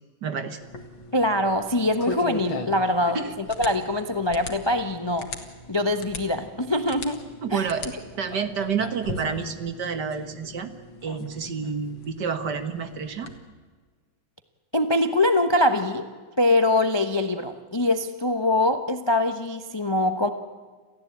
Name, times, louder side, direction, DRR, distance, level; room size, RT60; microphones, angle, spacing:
voice 1, 0.2-0.6 3.1-3.3 7.4-7.9 8.2-10.7 11.0-13.3, right 6 dB, 55° right, 9 dB, 1.9 m, -29 dB
sound 1, 0.6-13.4, left 3 dB, 65° left, 2.7 m, -39 dB
voice 2, 1.1-3.2 3.6-5.3 5.7-7.2 7.5-7.6 14.7-16.1 16.4-20.3, left 1 dB, 20° left, 8 dB, 0.7 m, -23 dB
29.0 x 15.0 x 8.7 m, 1.5 s
omnidirectional pair, 2.3 m